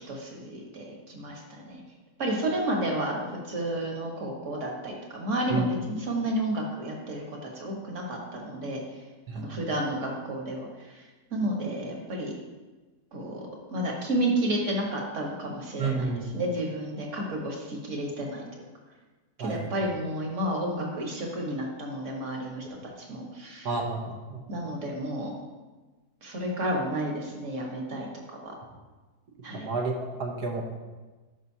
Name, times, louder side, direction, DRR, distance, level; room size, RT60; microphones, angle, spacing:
voice 1, 0.0-1.8 2.2-8.8 9.3-10.7 10.9-11.0 11.3-12.3 13.1-13.4 13.7-18.6 19.4-22.6 23.0-23.7 24.5-25.3 26.2-28.1 28.4-28.5 29.4-29.7, right 1 dB, 50° right, 0 dB, 1.6 m, -31 dB
voice 2, 15.8-16.2 19.4-19.6 23.6-24.4 29.5-30.6, right 3 dB, 80° right, 0 dB, 1.5 m, -30 dB
12.0 x 5.1 x 2.8 m, 1.3 s
omnidirectional pair, 1.7 m